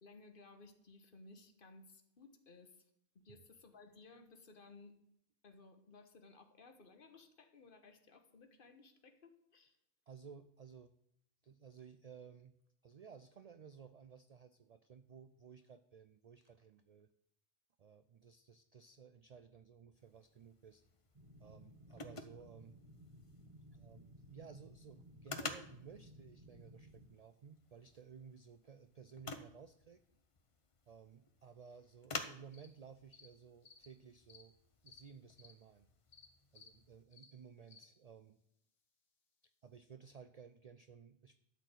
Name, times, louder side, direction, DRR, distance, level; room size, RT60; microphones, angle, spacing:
voice 1, 0.0-5.0 5.4-9.8, left 3 dB, 50° left, 7 dB, 1.2 m, -59 dB
voice 2, 10.1-10.9 11.4-12.5 12.8-17.1 17.8-20.8 21.4-22.8 23.7-30.0 30.9-34.5 34.8-35.9 36.5-38.4 39.6-41.4, right 6 dB, 60° right, 11 dB, 0.4 m, -57 dB
sound 1, 19.9-37.0, left 3 dB, 35° left, 0.6 m, -52 dB
sound 2, 21.1-27.1, equal, 30° right, 1.3 m, -58 dB
sound 3, 32.5-32.7 33.1-33.3 33.6-33.9 34.3-34.4 34.9-35.0 35.4-35.5 36.1-36.3 36.5-36.7 37.1-37.3 37.7-37.9, left 4 dB, 75° left, 1.6 m, -59 dB
12.5 x 4.3 x 8.0 m, 0.74 s
omnidirectional pair, 1.2 m